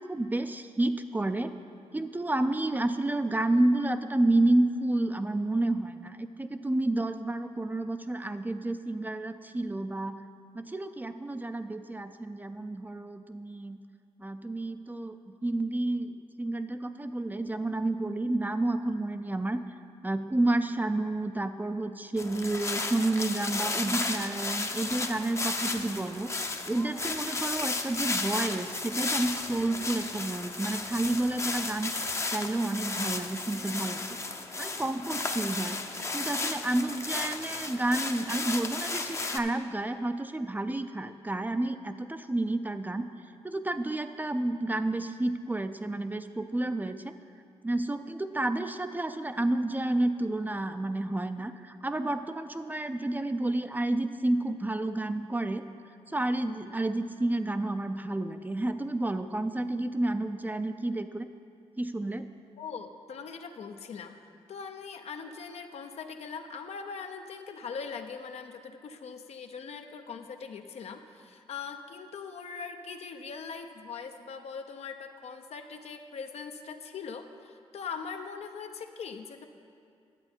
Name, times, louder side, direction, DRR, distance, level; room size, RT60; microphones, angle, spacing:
voice 1, 0.1-1.5 1.9-10.2 10.5-13.8 14.2-19.6 20.0-26.3 26.7-34.0 34.6-35.8 36.1-43.1 43.4-47.1 47.6-55.6 56.1-61.3 61.8-62.3, right 2 dB, 15° right, 9 dB, 0.4 m, -30 dB
sound 1, 22.2-39.4, left 3 dB, 25° left, 0.6 m, -34 dB
voice 2, 62.6-64.2 64.5-79.5, left 5 dB, 70° left, 6 dB, 0.6 m, -41 dB
10.5 x 7.8 x 4.4 m, 2.4 s
cardioid pair, 65°, 11 cm